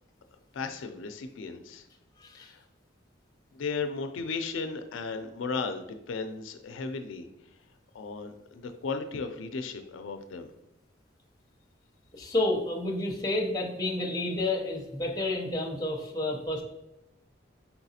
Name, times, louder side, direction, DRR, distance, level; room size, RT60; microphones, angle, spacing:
voice 1, 0.5-1.8 2.3-2.6 3.5-7.3 7.9-10.5, left 4 dB, 80° left, 7 dB, 0.4 m, -35 dB
voice 2, 2.2-2.5 12.1-16.6, left 2 dB, 20° left, 0 dB, 0.6 m, -30 dB
4.3 x 4.0 x 2.7 m, 0.90 s
head